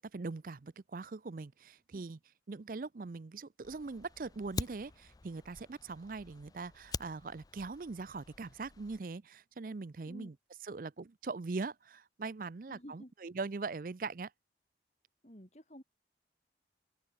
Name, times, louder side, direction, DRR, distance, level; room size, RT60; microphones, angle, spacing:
voice 1, 0.1-2.2 2.5-10.3 10.6-14.3, right 4 dB, 50° right, 0.5 m, -41 dB
Fire, 3.6-9.0, left 3 dB, 20° left, 0.4 m, -46 dB
voice 2, 12.7-13.1 15.2-15.8, equal, 40° left, 7.3 m, -51 dB
open air
head